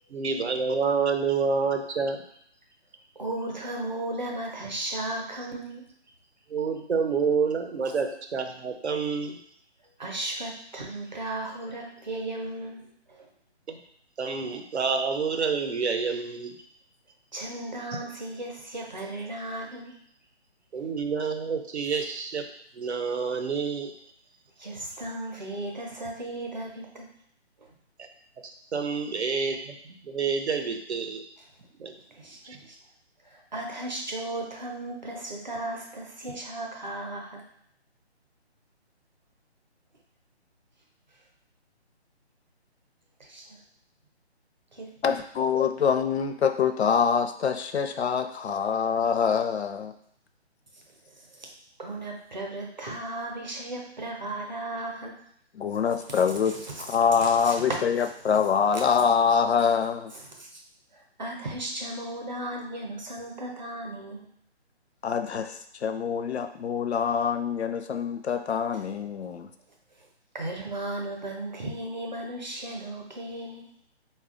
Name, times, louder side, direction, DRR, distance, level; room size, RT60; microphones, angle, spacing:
voice 1, 0.1-2.2 6.5-9.4 13.7-13.8 14.2-16.5 20.7-22.5 22.8-23.9 28.0-28.1 28.7-29.8 30.0-31.2 31.8-31.9 32.4-32.6, right 5 dB, 75° right, 6 dB, 0.7 m, -28 dB
voice 2, 3.2-5.8 10.0-12.8 13.1-13.3 17.3-20.0 24.6-27.1 32.2-32.4 32.7-32.8 33.3-37.4 43.3-43.6 51.4-51.5 51.8-55.1 56.4-56.8 57.2-57.5 60.4-60.6 60.9-64.3 70.3-73.7, right 1 dB, 40° right, 1 dB, 0.7 m, -35 dB
voice 3, 45.0-49.9 55.5-60.1 65.0-69.5, left 6 dB, 70° left, 7 dB, 0.5 m, -25 dB
4.2 x 2.3 x 3.7 m, 0.67 s
hypercardioid pair, 180°, 33 cm